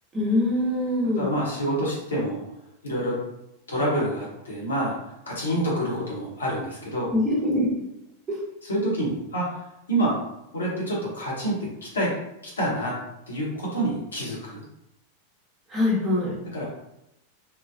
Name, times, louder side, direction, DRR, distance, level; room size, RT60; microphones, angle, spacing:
voice 1, 0.1-1.3 7.1-7.7 8.3-8.4 15.7-16.3, left 1 dB, 20° right, -6 dB, 1.0 m, -23 dB
voice 2, 1.1-2.4 2.8-3.1 3.7-5.0 5.3-7.1 8.6-9.6 9.9-10.2 10.5-12.1 12.6-12.9 13.3-14.6 16.5-16.6, right 1 dB, 70° left, -5 dB, 1.0 m, -27 dB
3.0 x 2.1 x 2.4 m, 0.88 s
figure-of-eight pair, 90°, 0 cm